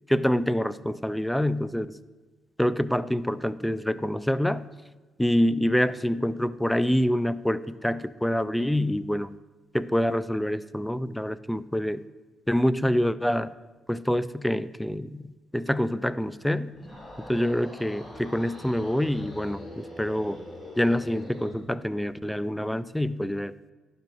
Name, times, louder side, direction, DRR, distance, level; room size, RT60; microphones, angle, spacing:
voice 1, 0.1-1.9 2.6-4.6 5.2-9.3 9.7-12.0 12.5-13.5 13.9-16.7 17.3-20.4 20.8-23.5, equal, 5° left, 16 dB, 0.4 m, -26 dB
sound 1, 16.7-21.6, left 1 dB, 25° left, 3.1 m, -43 dB
10.5 x 6.0 x 5.3 m, 1.3 s
cardioid pair, 90°, 0 cm